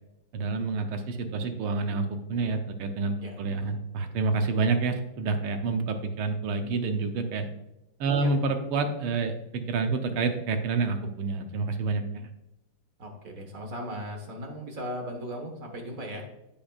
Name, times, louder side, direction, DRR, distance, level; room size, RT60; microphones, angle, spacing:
voice 1, 0.3-7.5 8.0-12.3, right 4 dB, 85° right, 6 dB, 1.8 m, -28 dB
voice 2, 3.2-3.8 8.2-8.3 13.0-16.3, equal, 45° right, 2 dB, 1.6 m, -38 dB
15.5 x 5.2 x 2.4 m, 0.87 s
omnidirectional pair, 2.4 m